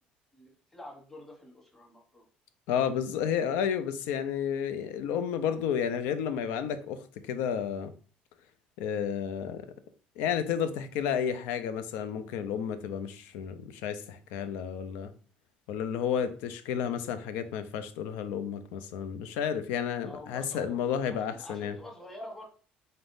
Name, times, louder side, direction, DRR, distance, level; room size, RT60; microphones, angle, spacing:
voice 1, 0.3-2.2 20.0-20.8 21.3-22.5, left 1 dB, 10° left, 0 dB, 1.0 m, -46 dB
voice 2, 2.7-7.9 8.8-9.7 10.2-15.1 15.7-21.8, left 8 dB, 85° left, 11 dB, 0.5 m, -31 dB
3.9 x 3.5 x 2.6 m, 0.40 s
cardioid pair, 150°, 3 cm